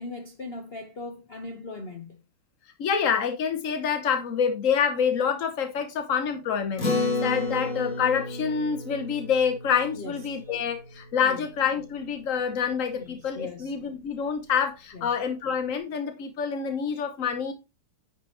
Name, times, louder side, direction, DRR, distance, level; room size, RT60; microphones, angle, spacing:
voice 1, 0.0-2.2 9.9-10.5 11.2-11.4 12.9-13.7 14.9-15.1, left 3 dB, 85° left, 0.5 m, -39 dB
voice 2, 2.8-17.5, left 7 dB, 55° left, 0.9 m, -27 dB
Acoustic guitar, 6.8-11.5, left 3 dB, 40° left, 2.6 m, -31 dB
9.9 x 6.0 x 3.2 m
omnidirectional pair, 2.4 m